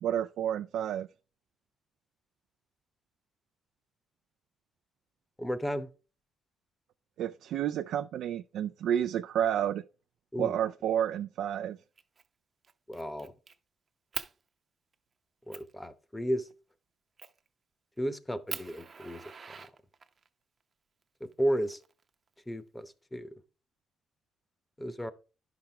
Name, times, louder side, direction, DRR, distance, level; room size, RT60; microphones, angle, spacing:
voice 1, 0.0-1.1 7.2-9.8 10.4-11.8, right 10 dB, 80° right, 0.3 m, -30 dB
voice 2, 5.4-5.9 10.3-10.5 12.9-13.3 15.5-16.5 18.0-19.2 21.2-21.8 22.5-23.3 24.8-25.1, equal, 10° left, 0.9 m, -33 dB
Fire, 12.0-12.3 12.6-13.6 14.1-14.3 14.9-15.0 15.5-15.7 17.2-17.5 18.0-18.1 18.5-20.3 21.3-22.3, right 5 dB, 40° right, 0.7 m, -42 dB
10.5 x 6.0 x 3.4 m
cardioid pair, 90°, 0 cm